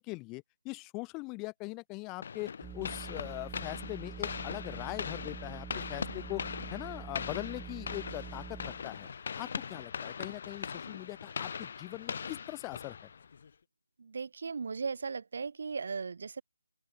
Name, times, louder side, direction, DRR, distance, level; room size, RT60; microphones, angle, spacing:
voice 1, 0.0-9.1 9.4-13.1, left 25 dB, 15° left, 0.7 m, -41 dB
sound 1, 2.2-13.5, left 6 dB, 45° left, 2.3 m, -41 dB
sound 2, 2.6-9.1, right 8 dB, 5° right, 1.1 m, -46 dB
voice 2, 14.0-16.4, right 5 dB, 55° right, 2.0 m, -37 dB
open air
figure-of-eight pair, 155°, 0 cm